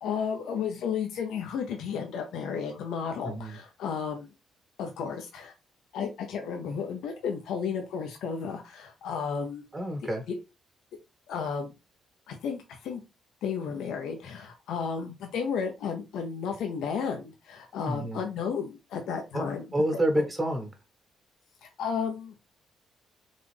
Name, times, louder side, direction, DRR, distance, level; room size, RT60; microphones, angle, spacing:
voice 1, 0.0-4.3 4.8-5.5 5.9-9.6 10.3-10.4 11.3-11.7 12.3-13.0 13.4-19.6 21.6-22.3, left 6 dB, 80° left, 0.7 m, -33 dB
voice 2, 9.7-10.2 17.9-18.2 19.3-20.7, right 1 dB, 25° right, 1.4 m, -28 dB
3.9 x 2.5 x 3.2 m
cardioid pair, 90°, 0 cm